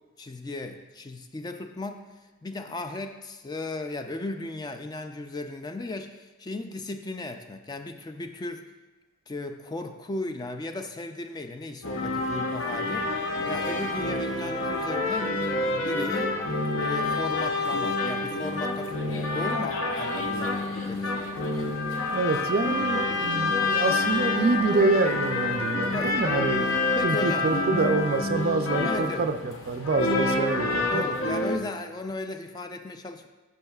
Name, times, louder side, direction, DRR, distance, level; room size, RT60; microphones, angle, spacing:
voice 1, 0.2-2.1 2.4-8.6 9.3-13.1 13.5-16.4 16.8-21.3 25.9-26.2 27.0-27.5 28.8-29.3 30.9-33.3, left 2 dB, 20° left, 6 dB, 0.3 m, -36 dB
sound 1, 11.8-31.6, left 2 dB, 70° left, 0.7 m, -28 dB
voice 2, 22.1-31.0, right 3 dB, 50° right, 8 dB, 0.4 m, -26 dB
12.0 x 5.4 x 2.3 m, 1.2 s
head